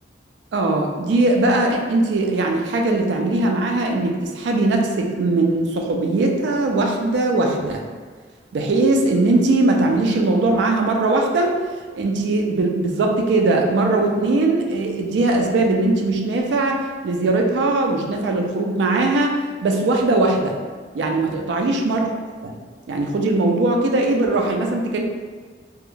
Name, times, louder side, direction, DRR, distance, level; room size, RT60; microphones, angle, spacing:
voice 1, 0.5-7.8 8.5-11.5 11.9-20.5 20.9-22.1 22.4-22.5 22.9-25.1, right 2 dB, 75° right, 2 dB, 0.3 m, -20 dB
2.3 x 2.0 x 3.1 m, 1.5 s
head